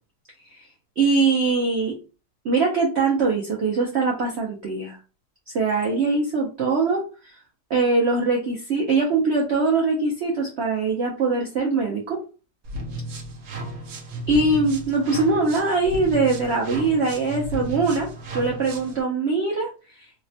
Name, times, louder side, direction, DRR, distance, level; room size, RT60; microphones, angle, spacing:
voice 1, 1.0-1.9 2.4-5.0 5.5-7.3 7.7-12.2 14.3-19.7, right 3 dB, 85° right, -1 dB, 0.5 m, -22 dB
sound 1, 12.6-19.0, right 1 dB, 65° right, 1.0 m, -34 dB
3.4 x 2.1 x 2.6 m, 0.33 s
omnidirectional pair, 1.9 m